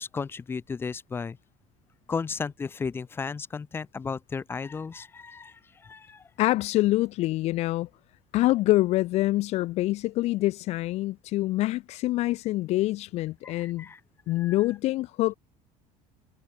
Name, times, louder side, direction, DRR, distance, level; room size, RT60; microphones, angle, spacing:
voice 1, 0.0-1.4 2.1-6.2 13.4-14.0 14.4-14.5, left 5 dB, 15° left, 2.0 m, -34 dB
voice 2, 6.4-7.9 8.3-13.9 14.3-15.3, left 17 dB, 45° left, 1.0 m, -25 dB
cardioid pair, 180°, 15 cm